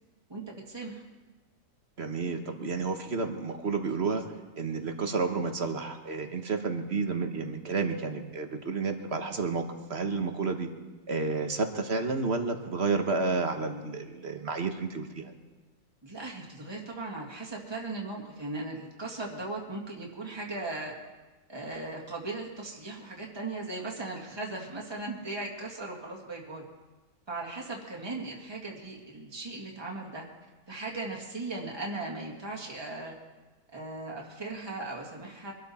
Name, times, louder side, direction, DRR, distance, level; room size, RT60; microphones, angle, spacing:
voice 1, 0.3-1.0 16.0-20.9 21.5-26.7 27.3-30.3 30.7-33.1 33.7-35.5, right 2 dB, 15° right, -2 dB, 2.1 m, -38 dB
voice 2, 2.0-4.2 4.6-9.6 9.9-10.7 11.1-15.3, right 4 dB, 45° right, 6 dB, 1.4 m, -31 dB
24.0 x 13.0 x 4.3 m, 1.2 s
omnidirectional pair, 1.7 m